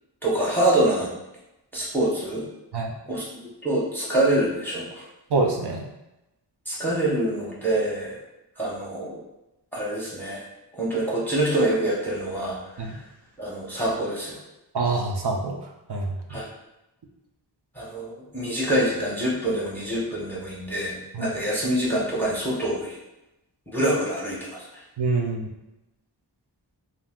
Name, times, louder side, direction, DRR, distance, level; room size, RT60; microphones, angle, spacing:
voice 1, 0.2-1.1 1.7-2.4 3.1-5.0 6.7-8.2 8.6-9.2 9.7-10.4 10.7-12.9 13.4-14.4 16.3-16.4 17.8-23.0 23.7-24.7, right 1 dB, 5° left, -5 dB, 0.7 m, -25 dB
voice 2, 5.3-5.9 12.8-13.0 14.7-15.6 15.9-16.4 21.1-21.3 25.0-25.5, right 3 dB, 65° right, 1 dB, 0.5 m, -25 dB
2.4 x 2.1 x 3.5 m, 0.94 s
wide cardioid pair, 65°, 44 cm